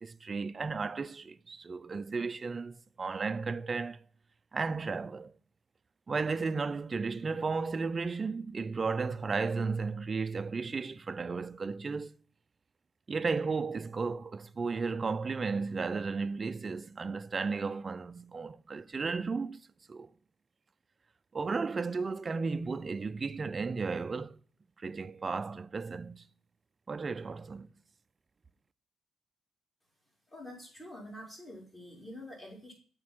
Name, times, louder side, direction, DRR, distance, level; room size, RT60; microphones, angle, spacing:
voice 1, 0.0-4.0 4.5-5.3 6.1-12.1 13.1-19.6 19.9-20.1 21.3-24.4 24.8-26.2 26.9-27.7, right 4 dB, 35° right, 0.4 m, -34 dB
voice 2, 30.3-32.7, left 1 dB, 20° left, 4.6 m, -46 dB
7.5 x 4.6 x 5.8 m
cardioid pair, 90°, 0 cm